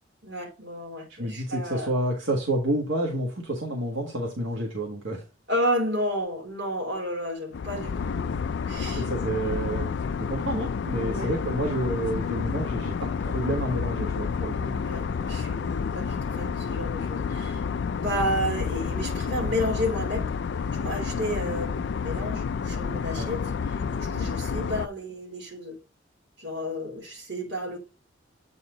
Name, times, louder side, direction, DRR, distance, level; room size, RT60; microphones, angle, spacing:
voice 1, 0.2-1.9 5.5-8.4 8.7-9.1 11.0-11.3 14.5-17.6 18.0-20.3 20.8-25.8 26.4-27.8, equal, 60° right, 3.2 m, -32 dB
voice 2, 1.2-5.2 8.8-14.5 23.1-23.3, right 1 dB, 80° right, 1.6 m, -29 dB
sound 1, 7.5-24.9, left 6 dB, 65° left, 0.3 m, -30 dB
8.3 x 4.3 x 3.7 m
head